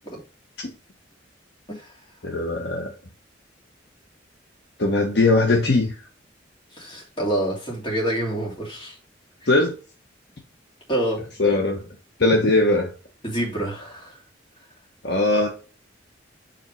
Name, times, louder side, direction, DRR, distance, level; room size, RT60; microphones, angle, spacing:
voice 1, 2.2-2.9 4.8-5.9 9.5-9.7 11.4-11.9 12.2-12.9 15.0-15.5, left 2 dB, 60° left, 2 dB, 1.0 m, -20 dB
voice 2, 6.7-9.0 9.4-9.5 10.9-11.3 13.2-14.2, right 1 dB, 25° left, -3 dB, 3.0 m, -27 dB
5.2 x 4.3 x 5.5 m, 0.36 s
head